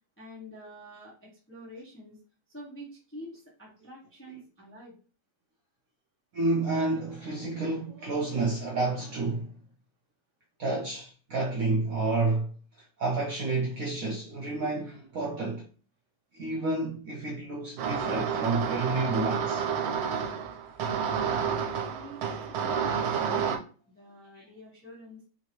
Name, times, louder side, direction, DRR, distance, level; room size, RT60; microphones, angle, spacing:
voice 1, 0.2-2.2 2.5-4.9 21.4-23.5 23.9-25.2, equal, 10° left, 0.6 m, -47 dB
voice 2, 6.3-9.6 10.6-12.5 13.0-15.7 16.3-19.6 24.3-24.4, right 3 dB, 60° right, 0.9 m, -30 dB
sound 1, 17.8-23.6, right 7 dB, 85° right, 1.4 m, -30 dB
3.7 x 2.7 x 2.9 m
omnidirectional pair, 2.2 m